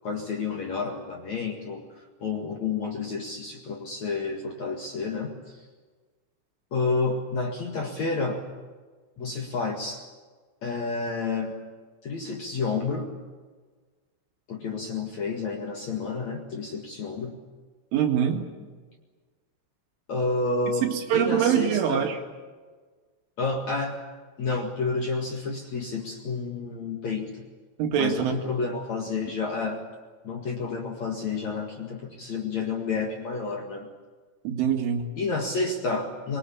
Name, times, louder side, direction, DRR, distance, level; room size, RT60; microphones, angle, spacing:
voice 1, 0.0-1.9 2.2-5.4 6.7-8.4 9.2-10.0 10.6-11.6 12.0-13.1 14.5-17.4 20.1-20.9 21.1-22.1 23.4-24.0 24.4-27.3 28.0-29.8 30.2-33.9 35.2-36.4, left 4 dB, 50° left, 1 dB, 2.3 m, -30 dB
voice 2, 17.9-18.5 20.8-22.2 27.8-28.4 34.4-35.1, right 9 dB, 75° right, 4 dB, 4.5 m, -24 dB
23.5 x 22.5 x 8.6 m, 1.4 s
omnidirectional pair, 5.7 m